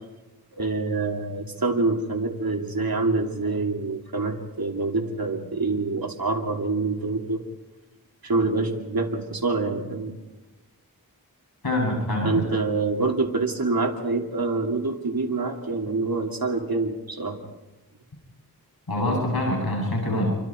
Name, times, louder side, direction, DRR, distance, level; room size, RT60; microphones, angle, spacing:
voice 1, 0.5-7.4 8.2-10.1 12.2-17.4, right 3 dB, 70° right, 1 dB, 2.9 m, -26 dB
voice 2, 11.6-12.4 18.9-20.4, left 1 dB, 75° left, -1 dB, 7.9 m, -25 dB
29.0 x 24.5 x 4.5 m, 1.1 s
wide cardioid pair, 45°, 37 cm